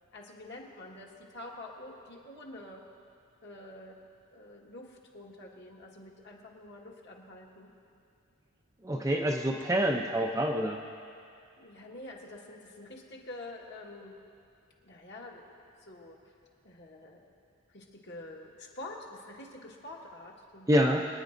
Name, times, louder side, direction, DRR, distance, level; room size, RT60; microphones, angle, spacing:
voice 1, 0.1-2.8 3.4-4.0 4.3-7.7 11.6-14.1 14.8-16.2 16.6-17.3 17.7-20.7, left 2 dB, 50° left, -2 dB, 1.5 m, -47 dB
voice 2, 8.8-10.8 20.7-21.0, equal, 15° right, 1 dB, 0.5 m, -27 dB
26.0 x 9.8 x 2.6 m, 2.4 s
head